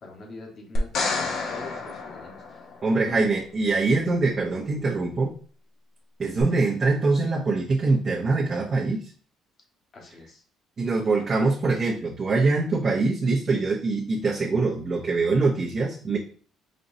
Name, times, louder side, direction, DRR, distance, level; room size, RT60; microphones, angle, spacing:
voice 1, 0.0-1.2 1.5-2.7 3.0-3.3 4.0-4.1 6.2-6.6 9.9-10.4, left 3 dB, 45° left, 1 dB, 1.3 m, -42 dB
sound 1, 0.8-3.1 6.4-6.5, left 3 dB, 65° left, 0.9 m, -29 dB
voice 2, 2.8-5.3 6.2-9.1 10.8-16.2, right 3 dB, 35° right, -4 dB, 0.8 m, -23 dB
5.2 x 2.9 x 2.7 m, 0.42 s
cardioid pair, 105°, 0 cm